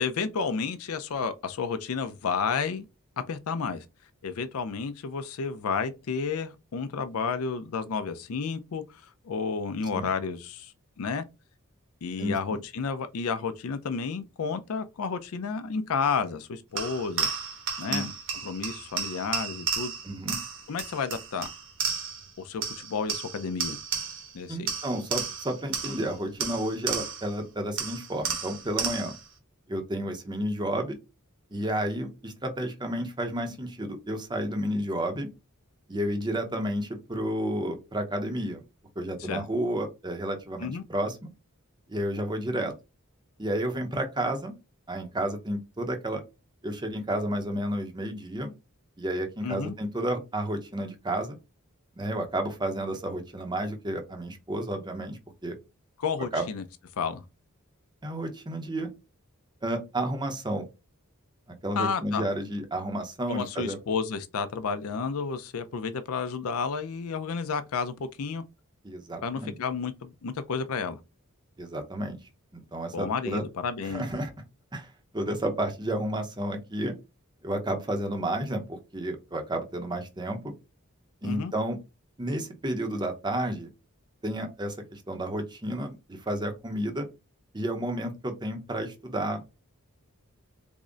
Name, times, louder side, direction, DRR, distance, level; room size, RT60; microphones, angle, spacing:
voice 1, 0.0-2.9 3.3-3.8 4.2-10.7 11.0-11.2 12.0-17.3 17.8-18.1 18.4-19.9 20.7-21.5 22.4-23.8 24.3-24.7 39.3-39.4 40.6-40.8 49.4-49.7 56.0-56.6 57.0-57.2 61.7-62.3 63.3-68.4 69.2-71.0 72.9-74.1 81.2-81.5, left 5 dB, 75° left, 0.5 m, -31 dB
voice 2, 12.2-12.6 17.8-18.1 20.0-20.4 24.5-29.1 29.7-31.0 31.5-35.3 35.9-38.6 39.0-41.2 41.9-42.7 43.4-44.5 44.9-46.2 46.6-48.5 49.0-51.4 52.0-55.6 56.3-56.5 58.0-58.9 59.6-60.7 61.5-63.8 68.8-69.6 71.6-72.2 72.5-73.4 73.9-74.3 74.7-76.9 77.4-80.5 81.2-81.8 82.2-83.7 84.2-87.0 87.5-89.5, right 1 dB, 20° right, 0.7 m, -31 dB
sound 1, 16.8-22.3 22.6-24.3 24.7-27.4 27.8-29.3, right 6 dB, 60° right, 1.1 m, -33 dB
3.5 x 2.1 x 3.8 m
head